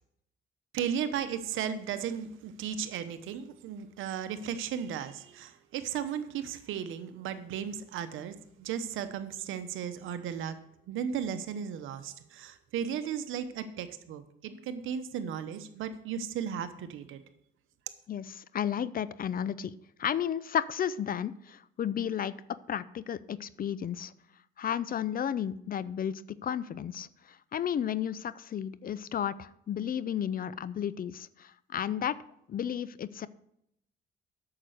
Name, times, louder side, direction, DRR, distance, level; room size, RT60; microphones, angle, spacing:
voice 1, 0.7-10.6 10.9-17.2, right 8 dB, 85° right, 11 dB, 0.9 m, -35 dB
voice 2, 18.1-19.7 20.0-24.1 24.6-27.1 27.5-32.2 32.5-33.3, left 9 dB, 45° left, 18 dB, 0.5 m, -33 dB
8.7 x 6.7 x 6.4 m, 0.76 s
cardioid pair, 90°, 20 cm